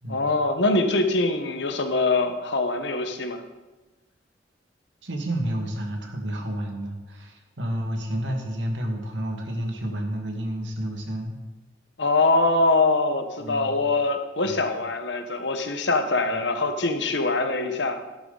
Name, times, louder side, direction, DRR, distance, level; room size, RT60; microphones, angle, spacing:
voice 1, 0.1-3.4 12.0-18.0, left 2 dB, 65° left, 6 dB, 1.3 m, -23 dB
voice 2, 5.0-11.4 13.4-13.8 14.4-14.6 16.3-16.4, right 1 dB, 75° right, 3 dB, 2.0 m, -30 dB
12.0 x 11.5 x 4.0 m, 1.1 s
head